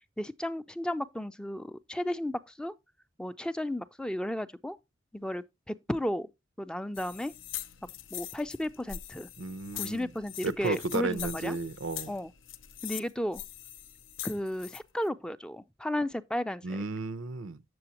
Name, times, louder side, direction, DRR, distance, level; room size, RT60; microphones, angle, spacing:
voice 1, 0.2-2.7 3.2-4.8 5.1-6.3 6.6-7.3 8.1-9.3 9.7-11.6 12.1-12.3 12.8-13.4 14.2-16.6, left 1 dB, 5° left, 0.4 m, -34 dB
sound 1, 6.9-14.8, left 11 dB, 85° left, 0.6 m, -42 dB
voice 2, 9.4-10.1 10.4-12.1 16.6-17.6, right 3 dB, 85° right, 0.7 m, -33 dB
7.7 x 7.6 x 2.8 m
head